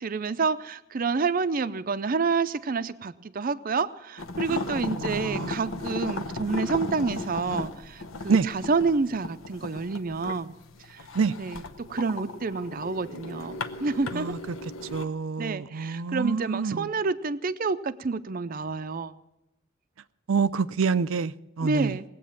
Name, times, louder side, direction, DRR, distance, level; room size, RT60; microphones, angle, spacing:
voice 1, 0.0-10.5 10.9-11.0 11.4-14.3 15.4-19.1 21.6-22.0, right 4 dB, 45° right, 0.5 m, -28 dB
sound 1, 4.2-15.0, left 2 dB, 85° left, 0.9 m, -36 dB
voice 2, 4.9-5.6 8.3-8.5 11.1-11.3 14.1-14.6 14.9-16.9 20.3-22.0, right 5 dB, 90° right, 0.5 m, -27 dB
20.0 x 8.4 x 7.2 m
head